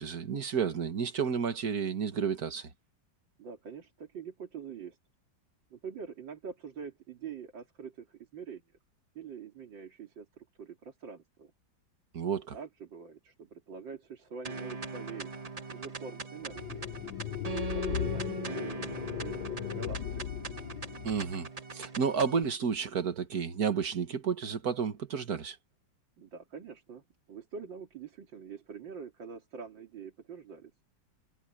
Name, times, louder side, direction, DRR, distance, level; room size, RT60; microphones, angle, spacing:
voice 1, 0.0-2.7 12.1-12.6 21.0-25.6, right 6 dB, 55° right, 2.0 m, -31 dB
voice 2, 3.4-5.0 5.7-8.6 9.1-11.5 12.5-15.3 15.7-16.9 17.7-20.2 26.2-30.7, right 6 dB, 75° right, 3.2 m, -45 dB
sound 1, 14.4-22.4, right 4 dB, 25° right, 1.0 m, -40 dB
sound 2, 16.5-21.3, left 12 dB, 80° left, 1.4 m, -37 dB
omnidirectional pair, 2.0 m